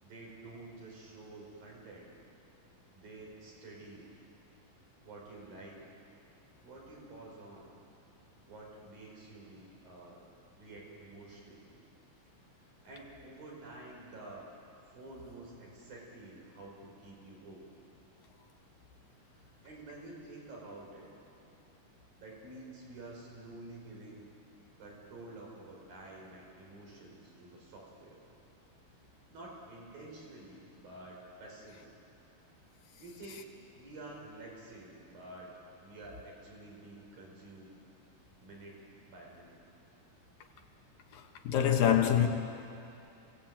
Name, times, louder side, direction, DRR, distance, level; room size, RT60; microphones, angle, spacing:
voice 1, 0.0-2.1 2.9-4.1 5.0-5.8 6.6-7.7 8.5-10.3 10.5-11.7 12.6-14.5 14.9-17.7 19.3-21.1 22.2-24.3 24.8-28.2 29.3-32.0 33.0-33.4 33.7-35.5 35.8-37.7 38.4-39.6, right 2 dB, 85° right, 6.9 m, -50 dB
voice 2, 41.1-42.3, left 9 dB, 80° left, 3.2 m, -26 dB
27.0 x 17.0 x 9.0 m
omnidirectional pair, 4.0 m